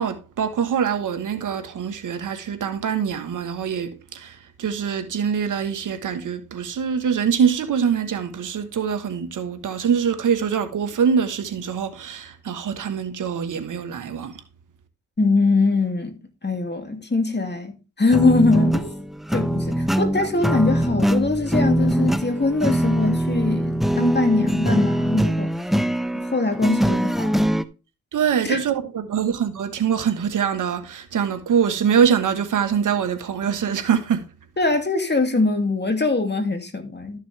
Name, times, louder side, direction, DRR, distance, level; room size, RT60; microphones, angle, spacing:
voice 1, 0.0-14.4 28.1-34.2, right 7 dB, 75° right, 1.5 m, -24 dB
voice 2, 15.2-19.0 19.3-25.5 26.1-27.6 28.5-28.6 34.6-37.2, left 3 dB, 35° left, 2.6 m, -22 dB
sound 1, 18.1-27.6, equal, ahead, 0.8 m, -22 dB
13.0 x 6.6 x 3.4 m
supercardioid pair, 45°, 31 cm